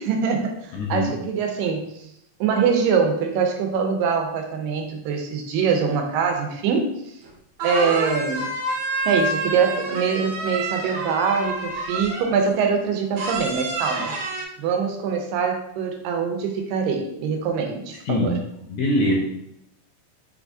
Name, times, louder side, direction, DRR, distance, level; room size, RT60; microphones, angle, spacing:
voice 1, 0.0-1.9 2.4-6.9 7.6-8.5 9.1-14.2 14.6-18.3, right 6 dB, 90° right, 3 dB, 2.4 m, -23 dB
voice 2, 0.7-1.1 18.1-18.4 18.7-19.1, left 1 dB, 70° left, -3 dB, 1.7 m, -22 dB
sound 1, 7.2-7.3 7.6-12.4 13.2-14.4, right 2 dB, 70° right, 2.1 m, -28 dB
5.7 x 3.5 x 2.6 m, 0.77 s
omnidirectional pair, 3.8 m